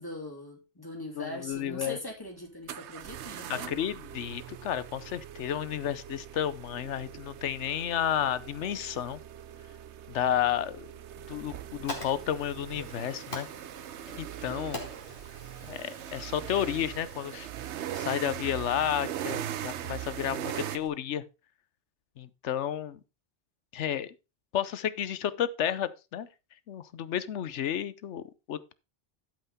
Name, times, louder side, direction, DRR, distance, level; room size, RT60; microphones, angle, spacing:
voice 1, 0.0-3.7, left 1 dB, 20° left, 3.1 m, -41 dB
voice 2, 1.1-2.0 3.5-9.2 10.1-10.9 11.3-13.5 14.1-14.8 15.7-17.5 17.9-21.2 22.2-23.0 23.7-24.1 24.5-26.3 26.7-28.7, left 10 dB, 85° left, 1.1 m, -32 dB
sound 1, 1.5-1.6 2.7-20.8, right 11 dB, 80° right, 1.0 m, -40 dB
Fire, 11.4-20.9, left 1 dB, 50° left, 2.9 m, -47 dB
12.0 x 5.7 x 4.1 m
omnidirectional pair, 1.2 m